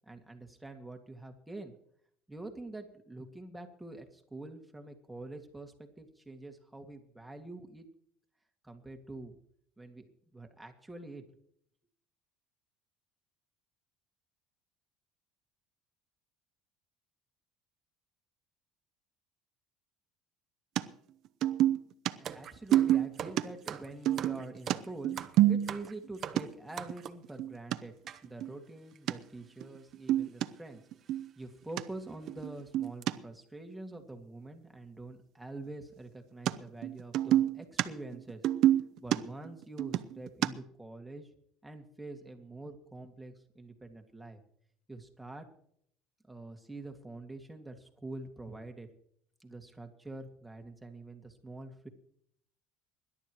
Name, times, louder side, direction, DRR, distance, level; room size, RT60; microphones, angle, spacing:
voice 1, 0.1-1.7 2.3-7.9 8.6-9.4 9.8-10.1 10.3-11.2 22.2-25.2 25.5-27.9 28.2-30.8 31.4-38.4 39.0-41.3 41.6-44.4 44.9-45.5 46.3-48.9 49.4-51.9, right 2 dB, 5° right, 4 dB, 2.2 m, -46 dB
sound 1, 20.8-20.9 21.4-22.1 22.7-23.4 24.1-26.0 26.4-26.5 26.9-27.0 27.2-27.8 28.2-28.5 29.1-29.2 29.6-29.7 29.9-30.5 30.9-31.3 31.8-31.9 32.3-33.1 36.5-36.6 36.8-37.9 38.1-40.5, right 13 dB, 60° right, 0.7 m, -27 dB
sound 2, 22.2-27.3 28.1-28.2 29.0-29.1 29.2-29.4 30.4-30.6 31.1-31.2 31.7-31.8 32.2-32.5 32.8-33.0, right 9 dB, 45° right, 1.0 m, -43 dB
24.5 x 11.5 x 3.1 m, 0.66 s
cardioid pair, 115°, 0 cm